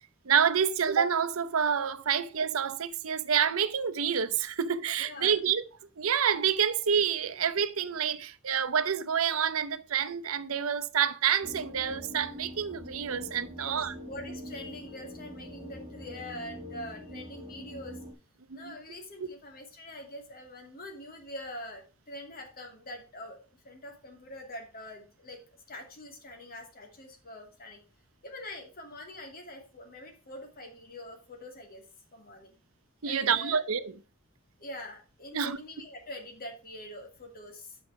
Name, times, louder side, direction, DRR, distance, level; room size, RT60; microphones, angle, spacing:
voice 1, 0.2-5.6 6.0-13.9 18.5-18.8 19.2-19.3 33.0-33.9 35.3-35.6, right 7 dB, 90° right, 0.7 m, -28 dB
voice 2, 5.0-5.4 13.5-18.0 18.5-23.4 23.6-25.4 25.7-27.8 28.2-31.8 32.1-32.6 33.0-33.6 34.6-37.8, left 1 dB, 45° left, 2.5 m, -44 dB
sound 1, 11.4-18.1, equal, 30° right, 2.2 m, -44 dB
8.9 x 5.8 x 4.7 m
head